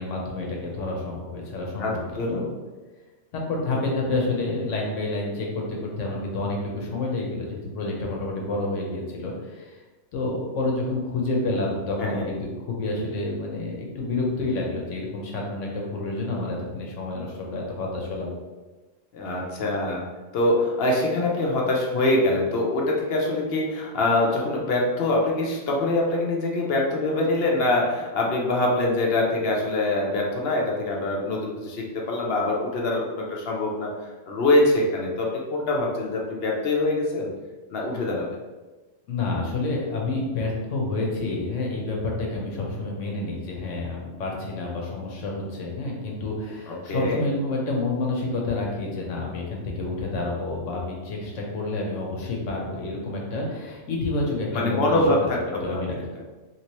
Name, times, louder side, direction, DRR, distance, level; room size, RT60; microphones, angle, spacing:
voice 1, 0.0-2.5 3.3-9.8 10.1-18.3 39.1-55.0 55.6-56.0, left 2 dB, 80° left, -1 dB, 1.1 m, -29 dB
voice 2, 1.8-2.4 12.0-12.3 19.1-20.0 20.3-33.9 34.3-37.3 37.7-38.3 46.7-47.2 54.5-55.9, left 2 dB, 60° left, -2 dB, 0.8 m, -24 dB
3.1 x 2.9 x 2.9 m, 1.2 s
omnidirectional pair, 1.3 m